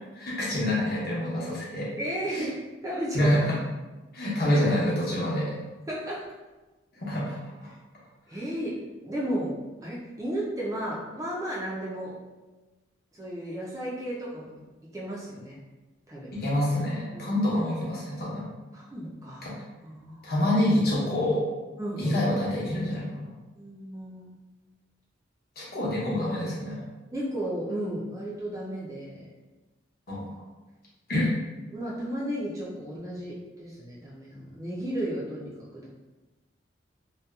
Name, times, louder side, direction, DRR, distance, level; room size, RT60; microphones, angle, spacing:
voice 1, 0.1-1.9 2.3-2.5 3.1-3.5 4.1-5.5 6.9-7.7 16.4-18.5 19.4-19.5 20.2-21.4 22.0-23.3 25.6-26.8 30.1-30.3 31.1-31.3, left 1 dB, 50° left, -6 dB, 0.8 m, -27 dB
voice 2, 2.0-3.3 5.9-6.3 8.3-8.8 9.0-9.5 9.8-12.2 13.1-14.6 14.9-15.6 16.1-16.3 17.1-17.3 18.7-19.5 19.8-20.2 21.8-22.2 23.6-24.3 27.1-29.3 31.7-35.9, right 1 dB, 15° right, -6 dB, 0.3 m, -34 dB
2.8 x 2.1 x 2.2 m, 1.2 s
head